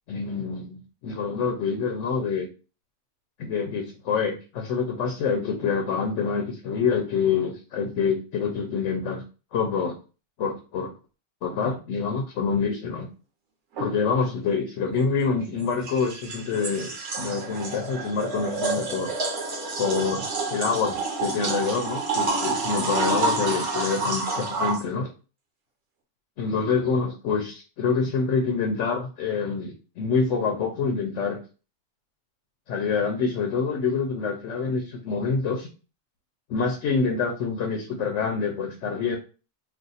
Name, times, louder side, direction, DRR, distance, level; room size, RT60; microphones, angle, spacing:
voice 1, 0.1-2.5 3.4-9.2 9.5-10.0 10.4-10.9 11.4-13.1 13.8-19.1 19.8-25.1 26.4-31.4 32.7-35.7 36.5-39.2, left 5 dB, 70° left, 3 dB, 0.9 m, -26 dB
sound 1, 13.8-13.9 15.6-24.8, right 3 dB, 70° right, 1.0 m, -28 dB
2.5 x 2.4 x 4.0 m, 0.35 s
omnidirectional pair, 1.3 m